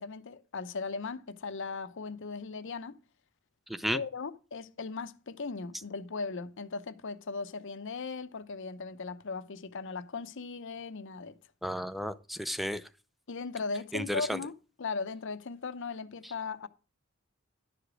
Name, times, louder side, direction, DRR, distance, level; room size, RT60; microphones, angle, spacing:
voice 1, 0.0-3.0 3.9-11.4 13.3-16.7, left 4 dB, 60° left, 0.7 m, -38 dB
voice 2, 3.7-4.0 11.6-12.8 13.9-14.4, equal, ahead, 0.5 m, -33 dB
11.5 x 5.0 x 6.0 m
head